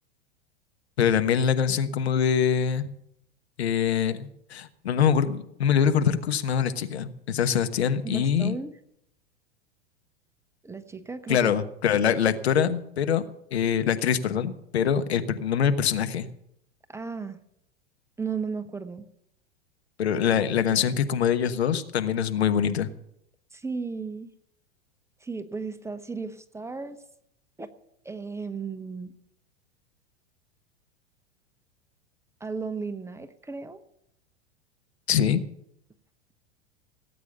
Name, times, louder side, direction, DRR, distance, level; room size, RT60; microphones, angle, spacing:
voice 1, 1.0-2.9 3.6-8.5 11.3-13.2 13.5-16.3 20.0-22.9 35.1-35.4, left 8 dB, 70° left, 10 dB, 1.2 m, -24 dB
voice 2, 8.0-8.8 10.6-11.4 16.9-17.4 18.2-19.0 23.5-24.3 25.2-27.0 27.6-27.7 28.0-29.1 32.4-33.8, right 4 dB, 10° right, 10 dB, 0.9 m, -34 dB
18.0 x 8.5 x 6.8 m, 0.75 s
figure-of-eight pair, 90°, 33 cm